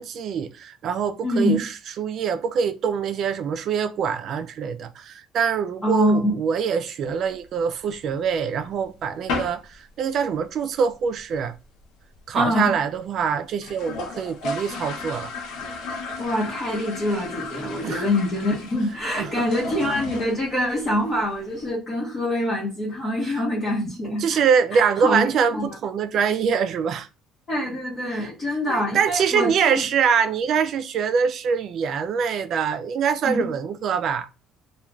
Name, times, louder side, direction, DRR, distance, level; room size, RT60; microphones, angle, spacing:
voice 1, 0.0-1.7 2.0-11.5 12.3-15.3 17.8-18.0 19.2-19.3 24.2-27.1 28.1-28.3 28.7-34.3, right 6 dB, 45° right, 0.3 m, -24 dB
voice 2, 1.2-1.6 5.8-6.3 12.3-12.7 16.2-24.4 24.7-25.7 27.5-29.8 33.2-33.4, left 1 dB, 30° left, 1.0 m, -25 dB
sound 1, 7.1-8.1 8.5-8.6 8.8-9.0 9.3-9.7 10.0-10.1 10.4-10.5 10.7-11.2 11.6-11.7 11.8-11.9 12.2-12.3 12.8-12.9 13.1-13.2 13.5-21.7, left 3 dB, 75° left, 0.7 m, -34 dB
2.3 x 2.3 x 3.0 m
cardioid pair, 165°, 0 cm